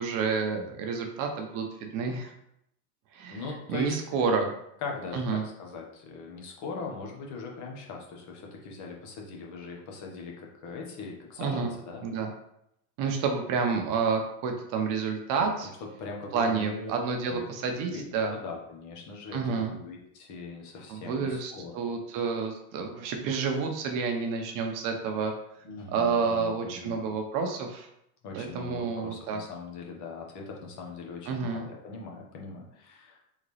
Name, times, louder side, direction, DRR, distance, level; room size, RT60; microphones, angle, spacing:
voice 1, 0.0-2.3 3.1-4.5 5.1-5.4 11.4-11.7 12.0-12.3 13.0-15.7 16.3-18.4 19.3-19.7 20.9-25.3 25.9-27.9 28.3-29.4 31.3-31.7, right 5 dB, 45° right, 4 dB, 0.8 m, -29 dB
voice 2, 3.3-4.2 4.8-12.0 15.8-16.9 17.3-17.5 17.9-21.8 25.6-27.1 28.2-33.3, left 4 dB, 40° left, 0 dB, 1.2 m, -40 dB
3.8 x 3.6 x 3.3 m, 0.77 s
supercardioid pair, 120°, 45 cm